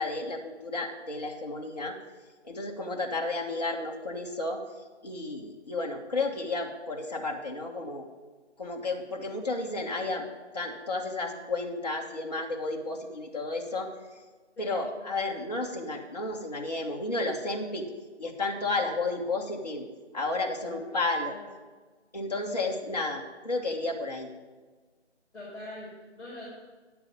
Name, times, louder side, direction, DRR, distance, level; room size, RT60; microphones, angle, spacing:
voice 1, 0.0-2.0 2.4-4.6 5.0-8.0 8.6-10.2 10.5-13.9 14.6-17.9 18.2-19.8 20.1-21.3 22.1-24.3, left 2 dB, 35° left, -1 dB, 1.4 m, -32 dB
voice 2, 25.3-26.4, left 1 dB, 5° left, -21 dB, 3.1 m, -43 dB
10.0 x 7.7 x 5.3 m, 1.3 s
figure-of-eight pair, 170°, 35 cm